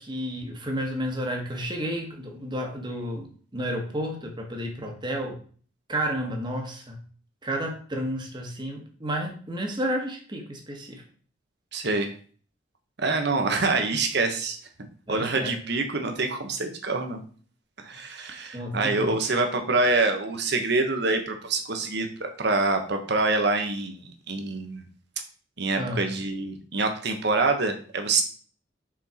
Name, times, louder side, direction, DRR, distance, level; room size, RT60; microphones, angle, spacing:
voice 1, 0.0-3.3 3.5-5.4 5.9-7.0 7.4-11.0 15.1-15.5 18.5-19.2 25.8-26.1, equal, 25° right, 2 dB, 1.5 m, -31 dB
voice 2, 11.7-12.1 13.0-14.6 15.1-17.2 17.8-24.8 25.6-28.2, right 3 dB, 65° right, 5 dB, 1.2 m, -26 dB
6.2 x 4.6 x 4.4 m, 0.43 s
head